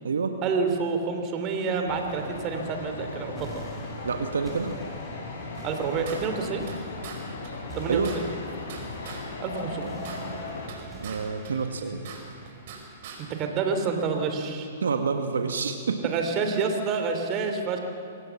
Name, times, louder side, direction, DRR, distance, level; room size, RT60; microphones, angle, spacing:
voice 1, 0.4-3.6 5.6-6.7 7.7-8.3 9.4-10.0 13.2-14.7 15.9-17.8, right 5 dB, 35° right, 5 dB, 3.1 m, -28 dB
sound 1, 1.9-10.7, left 3 dB, 75° left, 4.1 m, -38 dB
sound 2, 3.4-14.3, right 1 dB, 10° right, 6.1 m, -46 dB
voice 2, 4.0-4.8 7.9-8.1 11.0-12.0 14.8-16.0, right 5 dB, 85° right, 6 dB, 1.4 m, -27 dB
sound 3, 5.6-6.8 7.0-7.2 7.4-7.5 7.8-9.2 9.5-11.2 11.4-12.8 13.0-13.2, right 7 dB, 55° right, 5.0 m, -42 dB
24.5 x 17.0 x 7.2 m, 2.4 s
hypercardioid pair, 130°, 0 cm